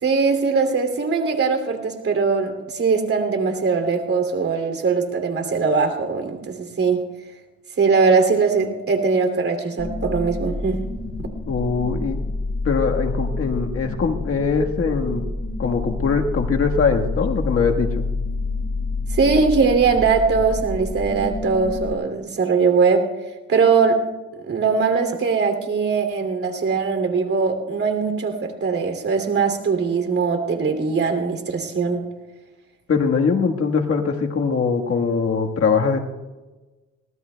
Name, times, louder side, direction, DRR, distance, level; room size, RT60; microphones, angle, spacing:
voice 1, 0.0-7.0 7.8-10.8 19.1-23.0 23.5-24.0 24.4-32.0, right 5 dB, 50° right, 5 dB, 2.8 m, -21 dB
sound 1, 9.8-21.9, left 3 dB, 35° left, 4.9 m, -28 dB
voice 2, 11.5-12.2 12.6-15.2 15.6-18.1 32.9-36.0, left 5 dB, 50° left, 3 dB, 1.5 m, -21 dB
23.5 x 18.5 x 2.3 m, 1.2 s
cardioid pair, 90°, 30 cm